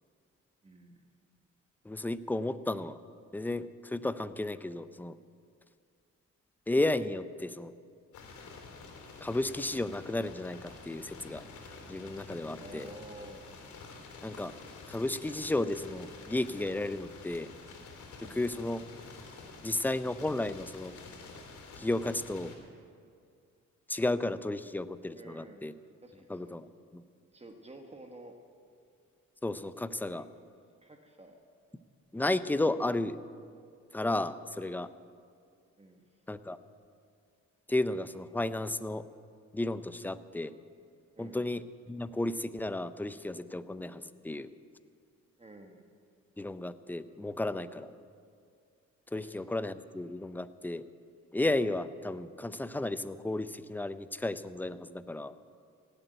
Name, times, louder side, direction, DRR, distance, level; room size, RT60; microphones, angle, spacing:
voice 1, 0.6-1.0 12.6-13.5 18.2-18.4 25.1-25.7 26.0-26.6 27.3-28.4 29.8-30.3 30.8-31.4 35.8-36.1 41.1-41.4 45.4-45.8 49.1-49.4, right 2 dB, 20° right, 4 dB, 1.4 m, -51 dB
voice 2, 1.8-3.0 3.3-5.2 6.7-7.7 9.2-11.4 11.9-12.9 14.2-14.5 14.9-17.5 18.2-18.8 19.6-21.0 21.8-22.5 23.9-25.7 26.3-26.7 26.9-27.0 29.4-30.3 32.1-33.2 33.9-34.9 36.3-36.6 37.7-39.0 39.5-40.5 41.2-44.5 46.4-47.9 49.1-50.8 51.3-55.3, left 2 dB, 5° left, 13 dB, 0.5 m, -33 dB
sound 1, 8.1-22.5, left 4 dB, 75° left, 3.6 m, -49 dB
17.0 x 8.1 x 9.2 m, 2.3 s
cardioid pair, 90°, 30 cm